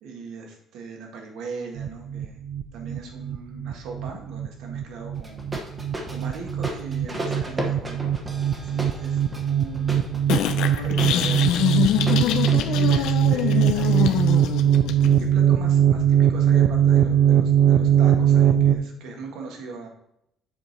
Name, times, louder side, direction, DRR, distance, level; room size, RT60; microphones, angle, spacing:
voice 1, 0.0-2.4 2.7-5.5 6.1-8.1 8.6-9.9 10.6-11.8 12.6-14.7 15.2-19.9, right 4 dB, 75° right, 1 dB, 1.7 m, -39 dB
sound 1, 1.8-18.8, right 9 dB, 50° right, 0.4 m, -21 dB
sound 2, 5.2-12.6, right 1 dB, 15° right, 1.0 m, -34 dB
sound 3, 10.3-15.3, left 11 dB, 75° left, 0.5 m, -24 dB
7.6 x 4.9 x 4.2 m, 0.77 s
cardioid pair, 170°, 0 cm